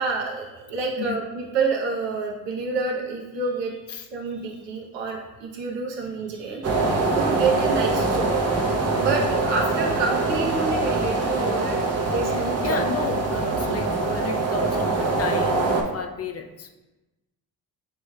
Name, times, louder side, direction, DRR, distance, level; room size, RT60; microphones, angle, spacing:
voice 1, 0.0-3.8 4.1-6.8 7.1-8.4 8.9-11.8 12.1-12.9, right 4 dB, 65° right, -1 dB, 0.8 m, -28 dB
sound 1, 6.6-15.8, right 3 dB, 35° right, 0.8 m, -24 dB
voice 2, 12.2-16.7, left 5 dB, 30° left, 5 dB, 0.5 m, -32 dB
6.2 x 3.1 x 2.2 m, 1.0 s
hypercardioid pair, 55°, 47 cm